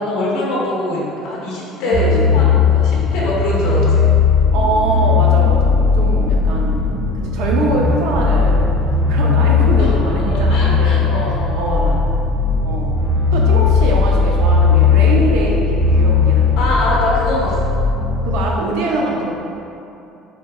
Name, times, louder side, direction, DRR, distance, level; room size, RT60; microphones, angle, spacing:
voice 1, 0.0-4.1 9.8-12.0 16.6-17.7, left 2 dB, 60° left, -5 dB, 0.9 m, -23 dB
voice 2, 1.8-2.3 4.5-7.0 7.2-8.8 9.1-11.1 11.5-12.0 12.6-13.0 13.3-16.6 16.9-17.0 18.2-19.2, right 2 dB, 75° right, -1 dB, 0.6 m, -23 dB
sound 1, 1.9-18.4, left 5 dB, 45° right, 0.8 m, -16 dB
sound 2, 4.5-14.9, left 2 dB, 20° left, 0.6 m, -33 dB
4.5 x 3.4 x 2.3 m, 2.8 s
cardioid pair, 170°, 0 cm